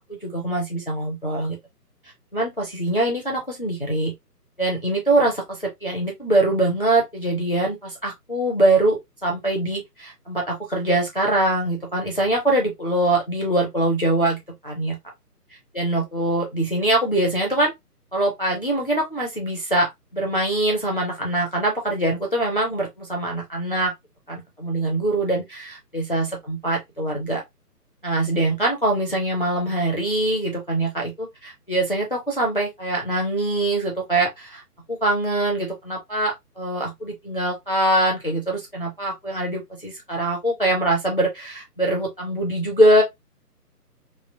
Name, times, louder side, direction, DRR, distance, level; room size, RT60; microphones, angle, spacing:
voice 1, 0.1-1.6 2.3-4.1 4.6-15.0 15.7-17.7 18.1-23.9 24.3-27.4 28.0-34.6 34.9-43.0, right 1 dB, 35° left, 0.5 m, -23 dB
3.1 x 2.4 x 2.3 m
figure-of-eight pair, 145°, 48 cm